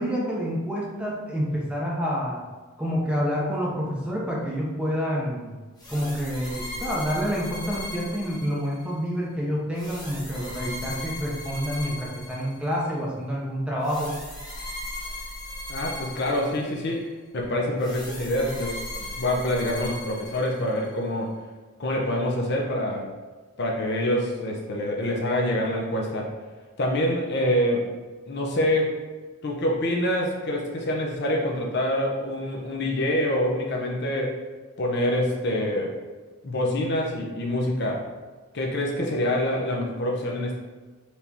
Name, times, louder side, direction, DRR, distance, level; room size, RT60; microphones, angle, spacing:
voice 1, 0.0-2.4 2.8-5.5 5.9-14.2, equal, 5° right, -5 dB, 0.6 m, -28 dB
sound 1, 5.8-8.9 9.8-12.9 13.8-17.0 17.8-20.9, left 1 dB, 20° left, 1.0 m, -38 dB
voice 2, 15.7-21.3 21.8-23.1 23.6-26.3 26.8-27.9 28.3-29.0 29.4-34.4 34.8-36.0 36.4-38.1 38.5-40.6, left 1 dB, 50° left, -1 dB, 0.7 m, -26 dB
4.4 x 3.4 x 2.8 m, 1.4 s
head